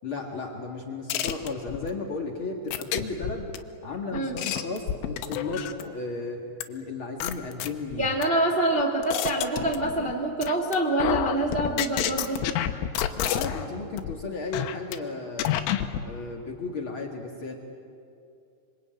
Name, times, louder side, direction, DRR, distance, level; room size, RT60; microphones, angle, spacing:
voice 1, 0.0-3.5 3.8-6.4 6.7-8.0 13.1-15.5 16.0-17.5, left 3 dB, 60° left, 0 dB, 1.3 m, -34 dB
sound 1, 1.1-1.9 2.7-3.6 4.1-5.9 6.6-6.7 7.2-8.2 8.7-10.1 10.4-10.7 11.0-13.7 14.0-14.1 14.5-15.0 15.4-16.0, left 11 dB, 90° left, 3.6 m, -29 dB
voice 2, 8.0-12.5, right 1 dB, 85° right, 1 dB, 0.5 m, -26 dB
26.0 x 25.0 x 9.1 m, 2.5 s
omnidirectional pair, 5.6 m